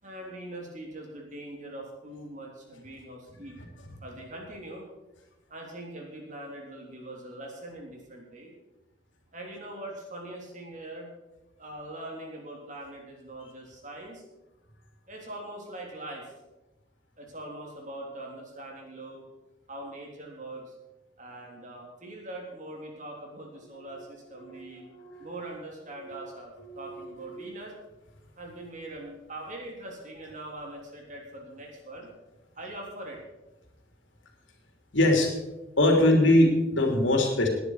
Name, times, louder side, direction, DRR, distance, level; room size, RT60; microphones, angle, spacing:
voice 1, 0.0-3.6 4.0-4.9 5.5-8.5 9.3-11.1 11.6-14.2 15.1-16.3 17.2-19.3 19.7-20.7 21.2-24.9 25.2-27.7 28.4-32.1 32.6-33.2 35.8-36.0, right 1 dB, 40° right, 0 dB, 3.4 m, -42 dB
voice 2, 24.5-25.4 26.0-26.2 26.7-27.5 34.9-35.3 35.8-37.5, left 1 dB, 70° left, 2 dB, 3.1 m, -23 dB
19.0 x 10.0 x 4.8 m, 1.0 s
head